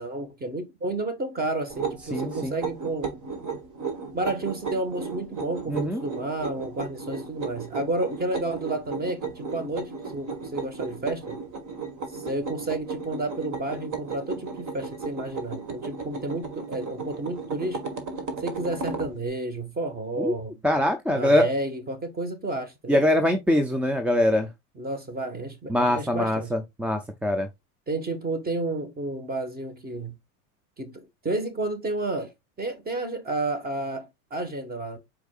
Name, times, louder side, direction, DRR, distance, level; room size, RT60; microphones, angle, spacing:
voice 1, 0.0-3.2 4.1-11.4 12.1-17.8 18.4-20.6 21.1-23.0 24.7-26.5 27.9-30.2 30.8-32.3 32.6-35.0, right 2 dB, 20° right, 1.4 m, -31 dB
sound 1, 1.7-19.1, right 4 dB, 45° right, 1.5 m, -35 dB
voice 2, 2.1-2.6 5.7-6.0 20.2-20.3 20.6-21.5 22.9-24.5 25.7-27.5, left 1 dB, 5° right, 0.3 m, -23 dB
4.7 x 4.7 x 2.4 m
supercardioid pair, 105°, 43 cm